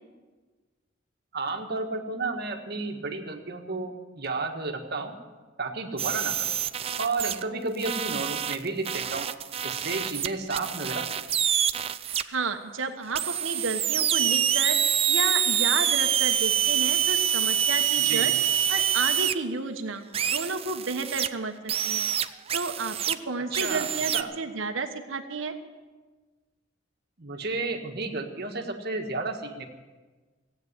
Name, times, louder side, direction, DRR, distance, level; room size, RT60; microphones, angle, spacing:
voice 1, 1.3-5.2 5.6-6.5 7.0-9.3 9.6-11.3 18.0-18.3 23.5-24.3 27.2-29.7, right 3 dB, 55° right, 3 dB, 1.7 m, -32 dB
sound 1, 6.0-7.4 7.8-12.2 13.1-19.3 20.1-21.3 21.7-23.2 23.5-24.2, right 9 dB, 30° right, 0.5 m, -26 dB
voice 2, 12.1-14.8 15.1-18.3 18.7-22.1 22.5-24.1 24.4-25.5, right 4 dB, 85° right, 7 dB, 1.3 m, -32 dB
16.0 x 8.8 x 9.7 m, 1.3 s
head